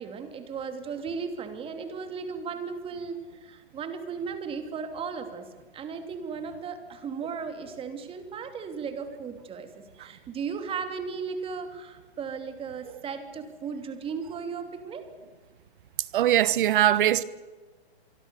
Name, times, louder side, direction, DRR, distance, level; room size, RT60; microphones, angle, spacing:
voice 1, 0.0-5.5 5.7-15.1, right 5 dB, 15° right, 2.9 m, -36 dB
voice 2, 16.1-17.2, right 12 dB, 50° right, 1.3 m, -21 dB
26.5 x 23.5 x 7.0 m
hypercardioid pair, 135°, 32 cm